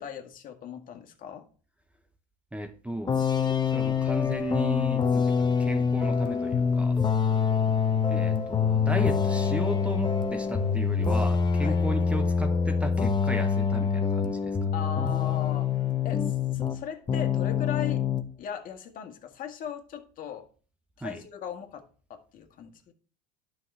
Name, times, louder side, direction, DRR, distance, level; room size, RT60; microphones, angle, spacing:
voice 1, 0.0-1.4 11.6-11.8 14.7-15.7 16.0-18.0 18.4-20.4 21.0-21.8 22.1-22.7, left 8 dB, 45° left, 1.8 m, -38 dB
voice 2, 2.5-3.2 3.6-7.0 8.1-14.7 21.0-21.2, right 1 dB, 5° right, 0.9 m, -35 dB
sound 1, 3.1-16.8 17.1-18.3, left 6 dB, 20° left, 1.1 m, -25 dB
sound 2, 3.8-11.8, right 3 dB, 65° right, 2.9 m, -46 dB
11.0 x 5.9 x 3.3 m
hypercardioid pair, 80°, 20 cm